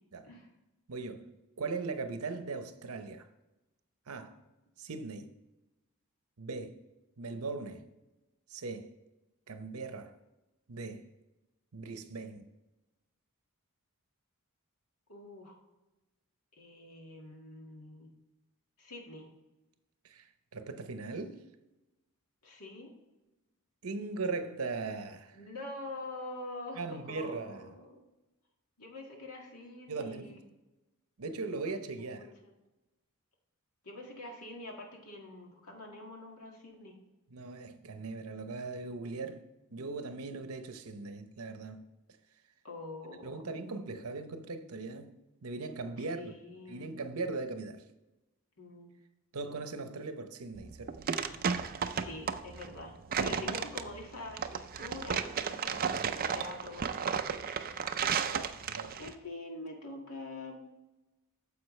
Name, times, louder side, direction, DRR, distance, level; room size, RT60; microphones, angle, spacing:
voice 1, 0.9-1.2 1.6-3.3 4.1-4.4 4.8-5.3 6.4-6.7 7.2-7.8 8.5-8.9 9.5-10.1 10.7-11.1 11.7-12.5 20.0-20.3 20.5-21.4 23.8-25.4 26.8-27.7 29.9-30.3 31.2-32.2 37.3-39.4 39.7-41.8 43.2-45.1 45.4-46.3 46.7-47.8 49.3-51.1 53.3-53.6 55.9-56.0 58.3-59.0, right 3 dB, 75° right, 0.8 m, -39 dB
voice 2, 15.1-15.6 16.5-18.1 18.8-19.3 22.4-22.9 25.3-28.0 28.8-30.4 32.0-32.5 33.8-37.0 42.6-43.4 46.0-46.9 48.6-48.9 51.8-55.8 56.1-57.6 59.0-60.6, left 2 dB, 90° left, 2.0 m, -45 dB
sound 1, 50.6-59.1, right 6 dB, 40° right, 0.5 m, -33 dB
9.5 x 7.1 x 3.2 m
head